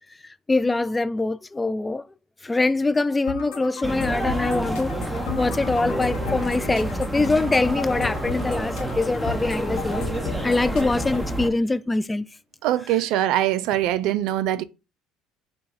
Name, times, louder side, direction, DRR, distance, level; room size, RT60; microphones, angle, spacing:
voice 1, 0.5-2.0 2.4-4.9 5.4-10.0 10.4-12.3, left 3 dB, 15° left, 0.4 m, -23 dB
sound 1, 3.3-11.3, left 5 dB, 75° left, 1.0 m, -35 dB
sound 2, 3.8-11.5, right 1 dB, 5° right, 1.0 m, -29 dB
sound 3, 6.6-11.9, right 4 dB, 50° right, 1.6 m, -47 dB
voice 2, 12.6-14.6, right 12 dB, 70° right, 0.3 m, -22 dB
5.3 x 2.2 x 4.1 m
hypercardioid pair, 70°, 0 cm